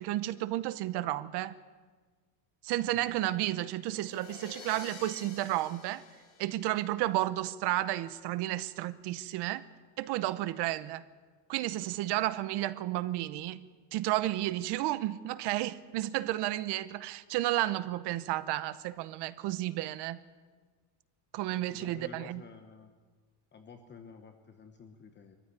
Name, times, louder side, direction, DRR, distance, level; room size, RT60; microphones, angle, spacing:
voice 1, 0.0-1.5 2.6-6.0 6.4-9.6 10.0-11.0 11.5-20.2 21.3-22.4, right 15 dB, 60° right, 14 dB, 1.0 m, -32 dB
sound 1, 3.8-7.1, left 4 dB, 70° left, 7.2 m, -49 dB
voice 2, 21.6-22.9 23.5-25.4, left 5 dB, 25° left, 6 dB, 1.1 m, -51 dB
23.5 x 15.0 x 9.7 m, 1.4 s
cardioid pair, 170°, 45 cm